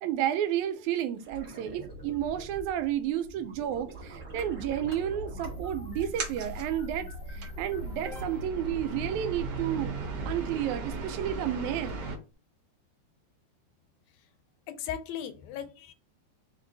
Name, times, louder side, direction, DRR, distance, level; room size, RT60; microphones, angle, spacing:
voice 1, 0.0-9.9 10.3-11.9, right 10 dB, 85° right, 1.9 m, -31 dB
sound 1, 1.2-7.0 7.4-9.9 12.3-12.4, right 2 dB, 40° right, 1.1 m, -46 dB
sound 2, 4.3-10.4, equal, 50° left, 1.0 m, -42 dB
sound 3, 5.9-12.2, right 4 dB, 65° right, 1.7 m, -38 dB
voice 2, 14.7-15.9, left 9 dB, 80° left, 1.8 m, -37 dB
4.8 x 2.7 x 3.8 m
omnidirectional pair, 3.3 m